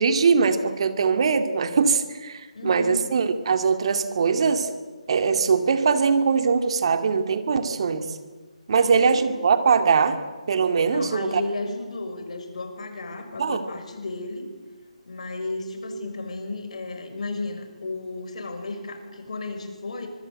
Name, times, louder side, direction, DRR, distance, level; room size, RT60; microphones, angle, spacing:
voice 1, 0.0-4.7 5.1-8.1 8.7-10.2 10.5-11.4 13.4-13.6, right 5 dB, 50° right, 8 dB, 2.4 m, -21 dB
voice 2, 2.5-3.1 8.7-9.4 10.9-14.4 15.1-20.1, left 2 dB, 65° left, 6 dB, 6.1 m, -34 dB
25.5 x 23.0 x 7.9 m, 1.3 s
figure-of-eight pair, 155°, 4 cm